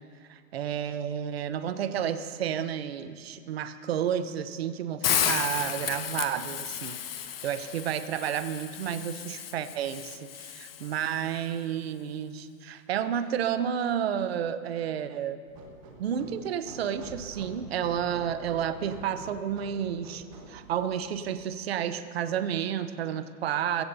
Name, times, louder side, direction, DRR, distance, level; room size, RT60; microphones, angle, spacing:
voice 1, 0.3-7.0 7.4-15.4 16.0-23.8, right 9 dB, 45° right, 11 dB, 0.7 m, -31 dB
Hiss, 5.0-11.1, left 9 dB, 40° left, 0.6 m, -33 dB
sound 1, 15.5-21.5, right 3 dB, 25° right, 1.2 m, -47 dB
21.0 x 16.0 x 2.7 m, 2.1 s
hypercardioid pair, 170°, 44 cm